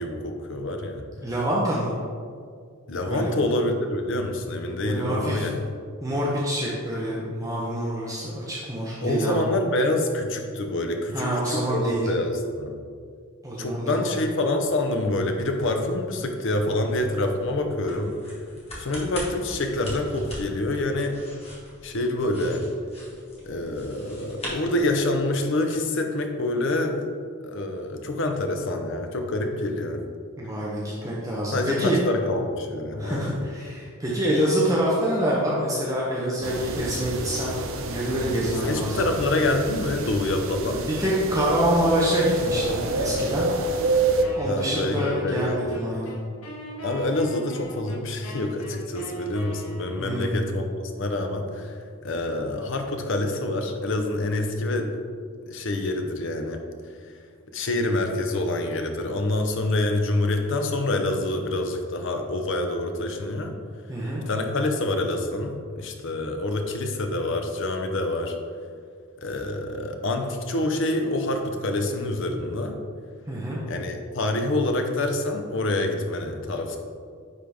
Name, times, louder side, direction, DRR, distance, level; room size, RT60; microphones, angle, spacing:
voice 1, 0.0-1.0 2.9-5.5 9.0-12.7 13.6-18.1 18.8-21.2 21.8-22.6 23.5-27.0 27.4-30.0 31.5-33.4 38.6-40.8 44.4-45.8 46.8-54.9 55.5-56.6 57.5-63.5 64.3-68.4 69.2-72.8 73.7-76.8, left 2 dB, 55° left, 4 dB, 0.7 m, -26 dB
voice 2, 1.2-1.9 3.1-3.3 4.8-5.5 6.0-9.4 11.1-12.1 13.4-14.1 30.4-32.0 33.0-37.6 37.8-39.0 40.7-43.5 44.1-46.1 50.0-50.4 63.9-64.2 73.3-73.6, right 1 dB, 15° right, -6 dB, 0.7 m, -26 dB
sound 1, 14.7-25.4, left 1 dB, 25° left, 1.5 m, -42 dB
sound 2, 36.4-44.2, right 3 dB, 60° right, 0.6 m, -28 dB
Wind instrument woodwind instrument, 44.2-50.2, equal, 80° left, 1.7 m, -40 dB
9.6 x 3.9 x 3.4 m, 2.1 s
head